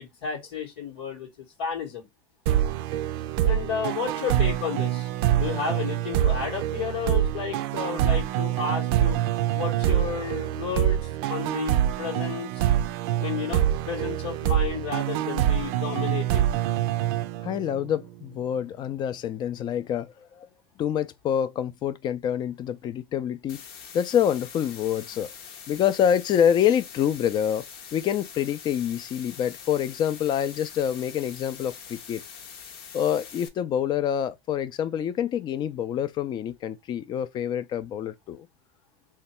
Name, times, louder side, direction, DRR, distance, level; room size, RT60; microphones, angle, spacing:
voice 1, 0.0-2.1 3.4-9.2 9.5-12.7 13.2-16.5, left 7 dB, 90° left, 1.1 m, -32 dB
sound 1, 2.5-17.9, right 12 dB, 70° right, 0.4 m, -25 dB
voice 2, 17.4-20.5 20.8-23.6 23.9-25.3 25.7-27.6 27.9-32.2 32.9-38.5, left 9 dB, 35° left, 0.4 m, -26 dB
sound 2, 23.5-33.5, left 7 dB, 70° left, 0.9 m, -44 dB
2.8 x 2.3 x 4.2 m
supercardioid pair, 120°, 13 cm